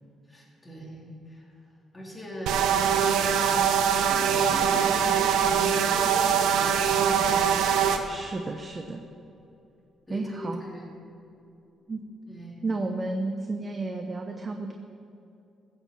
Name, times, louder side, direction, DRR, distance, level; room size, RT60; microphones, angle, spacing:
voice 1, 0.3-1.5 1.9-2.7 3.3-7.5 10.1-10.9 12.3-12.6, equal, 20° left, -3 dB, 3.7 m, -41 dB
sound 1, 2.5-8.0, right 8 dB, 90° right, 1.0 m, -23 dB
voice 2, 8.1-9.0 10.1-10.6 11.9-12.0 12.6-14.7, right 2 dB, 30° right, 5 dB, 0.9 m, -32 dB
15.0 x 7.4 x 7.1 m, 2.7 s
cardioid pair, 90°, 0 cm